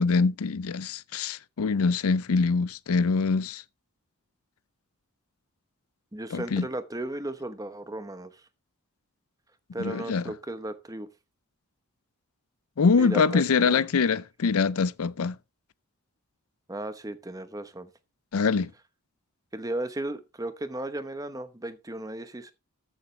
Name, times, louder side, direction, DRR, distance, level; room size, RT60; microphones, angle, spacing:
voice 1, 0.0-3.6 6.3-6.7 9.8-10.2 12.8-15.4 18.3-18.7, left 5 dB, 75° left, 0.5 m, -24 dB
voice 2, 6.1-8.4 9.7-11.1 13.0-13.8 16.7-17.9 19.5-22.5, right 1 dB, 15° right, 0.8 m, -35 dB
14.0 x 7.2 x 3.2 m
head